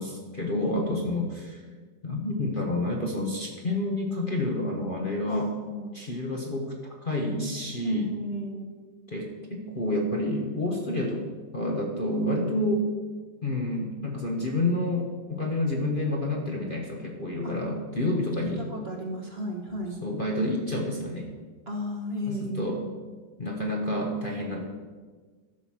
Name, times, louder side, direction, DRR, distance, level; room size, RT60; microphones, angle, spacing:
voice 1, 0.0-1.6 2.0-5.5 5.9-6.7 7.0-8.1 9.1-11.2 11.5-12.8 13.4-18.7 20.0-21.3 22.3-22.8 23.4-24.6, left 1 dB, 35° left, 0 dB, 1.2 m, -29 dB
voice 2, 0.6-1.2 5.3-5.9 7.8-8.7 17.4-17.5 18.6-20.0 21.7-22.9 24.5-24.6, equal, 35° right, 1 dB, 1.4 m, -34 dB
12.0 x 6.8 x 5.8 m, 1.4 s
omnidirectional pair, 2.0 m